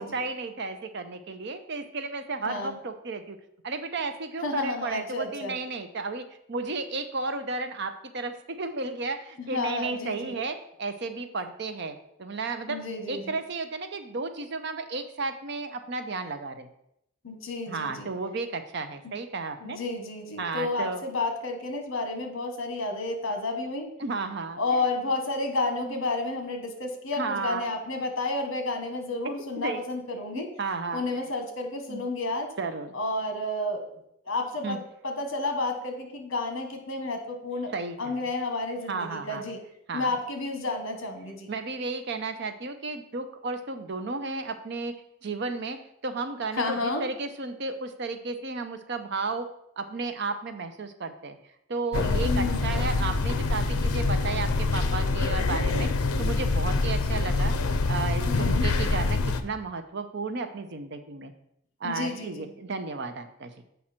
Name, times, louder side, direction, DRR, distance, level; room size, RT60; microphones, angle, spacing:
voice 1, 0.0-3.4 3.6-16.7 17.7-19.8 20.4-21.0 24.0-24.6 25.9-26.0 27.2-27.7 29.5-29.8 30.3-31.0 31.9-32.0 32.6-33.0 34.6-34.8 37.7-38.2 38.9-39.4 39.9-40.1 41.5-49.5 49.8-51.4 51.7-55.9 56.2-57.5 57.9-61.3 61.8-63.5, right 3 dB, 55° right, 9 dB, 0.6 m, -33 dB
voice 2, 2.4-2.8 4.4-5.6 9.4-10.4 12.7-13.4 17.2-18.1 19.0-19.1 19.6-23.9 24.6-30.5 30.9-32.5 32.9-33.8 34.3-37.7 38.0-39.6 39.9-41.5 46.5-47.0 52.2-52.7 58.3-58.7 61.8-62.5, left 2 dB, 65° left, 5 dB, 1.3 m, -31 dB
sound 1, 51.9-59.4, left 3 dB, 85° left, 0.6 m, -25 dB
7.4 x 5.3 x 4.3 m, 0.78 s
head